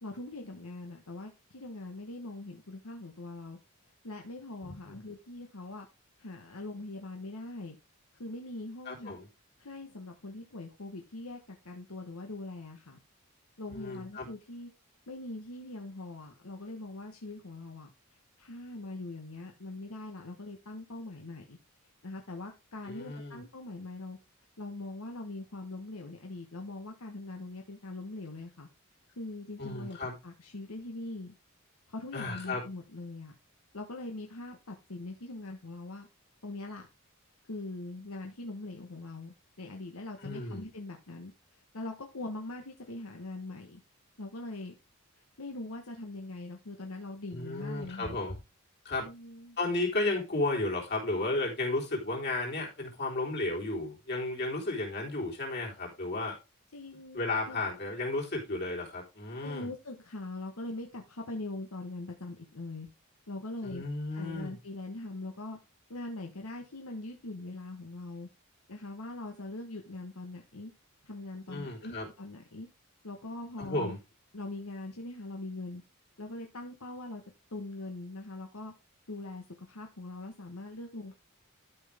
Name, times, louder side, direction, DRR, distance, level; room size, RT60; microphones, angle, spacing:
voice 1, 0.0-3.6 4.0-5.9 6.2-7.8 8.1-9.2 9.6-13.0 13.6-14.7 15.1-17.9 18.4-21.6 22.0-24.2 24.6-28.7 29.1-30.0 30.2-31.3 31.9-33.4 33.7-36.1 36.4-36.9 37.4-41.3 41.7-43.8 44.2-44.7 45.4-48.2 49.0-49.6 56.7-57.6 59.4-62.9 63.3-63.8 64.1-65.6 65.9-68.3 68.7-70.7 71.0-72.7 73.0-74.0 74.3-75.8 76.2-77.2 77.5-78.7 79.1-81.2, left 2 dB, 75° left, 2 dB, 1.2 m, -42 dB
voice 2, 4.6-5.0 8.9-9.3 13.7-14.3 22.9-23.4 29.6-30.1 32.1-32.6 40.2-40.7 47.3-48.4 48.8-49.1 49.6-56.4 57.1-59.7 63.6-64.6 71.5-72.1 73.6-74.0, left 2 dB, 50° left, -3 dB, 3.9 m, -33 dB
12.5 x 5.7 x 3.6 m, 0.26 s
head